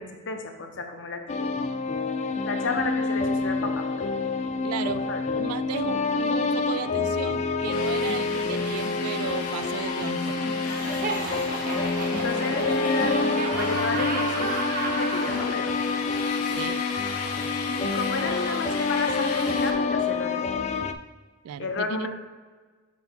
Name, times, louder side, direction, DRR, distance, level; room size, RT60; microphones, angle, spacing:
voice 1, 0.0-1.5 2.4-4.0 5.0-5.2 11.0-11.7 12.2-14.5 14.9-15.7 17.7-20.4 21.6-22.1, left 3 dB, 55° left, 5 dB, 0.8 m, -31 dB
sound 1, 1.3-20.9, left 4 dB, 30° left, 0.3 m, -27 dB
voice 2, 4.6-10.5 16.5-16.9 21.4-22.1, right 8 dB, 75° right, 15 dB, 0.3 m, -35 dB
sound 2, 7.7-19.7, left 4 dB, 85° left, 1.0 m, -36 dB
Laughter, 10.6-15.5, right 4 dB, 35° right, 0.8 m, -32 dB
5.7 x 3.8 x 5.6 m, 1.4 s
head